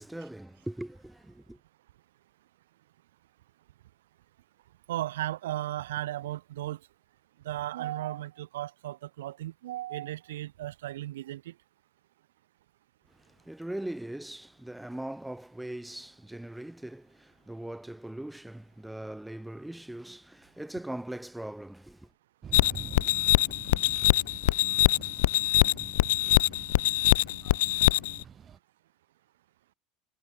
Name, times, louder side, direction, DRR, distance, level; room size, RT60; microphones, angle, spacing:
voice 1, 0.0-1.6 13.1-22.1, right 1 dB, 5° right, 5.8 m, -40 dB
voice 2, 4.9-6.8 7.4-11.5 26.0-26.2, right 14 dB, 75° right, 6.4 m, -35 dB
sound 1, 22.4-28.6, right 8 dB, 35° right, 4.6 m, -46 dB
sound 2, 22.5-28.2, left 17 dB, 70° left, 0.3 m, -24 dB
figure-of-eight pair, 70°, 0 cm